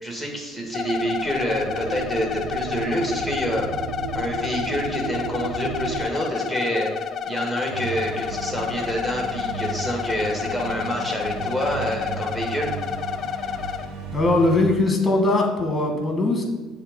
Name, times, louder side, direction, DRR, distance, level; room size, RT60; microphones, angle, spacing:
voice 1, 0.0-3.7 4.1-6.9 7.2-12.7, equal, 5° right, 0 dB, 1.3 m, -27 dB
sound 1, 0.6-6.0, right 6 dB, 90° right, 0.5 m, -34 dB
sound 2, 0.7-13.9, left 8 dB, 40° left, 0.3 m, -30 dB
sound 3, 7.7-14.8, right 6 dB, 70° right, 1.1 m, -35 dB
voice 2, 14.1-16.4, left 2 dB, 15° left, 2 dB, 1.2 m, -20 dB
7.3 x 3.4 x 5.0 m, 1.3 s
cardioid pair, 135°, 0 cm